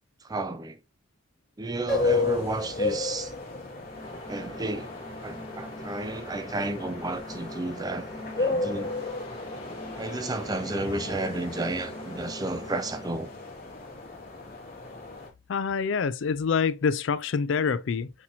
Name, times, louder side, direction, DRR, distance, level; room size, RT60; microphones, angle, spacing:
voice 1, 0.2-0.8 1.6-3.3 4.3-4.9 5.2-8.1 8.3-9.0 10.0-13.3, right 2 dB, 20° right, 0.4 m, -32 dB
sound 1, 1.9-15.3, left 3 dB, 45° left, 1.4 m, -33 dB
sound 2, 3.8-13.1, equal, 20° left, 1.0 m, -43 dB
voice 2, 15.5-18.1, left 5 dB, 60° left, 0.4 m, -26 dB
5.9 x 2.9 x 2.7 m
head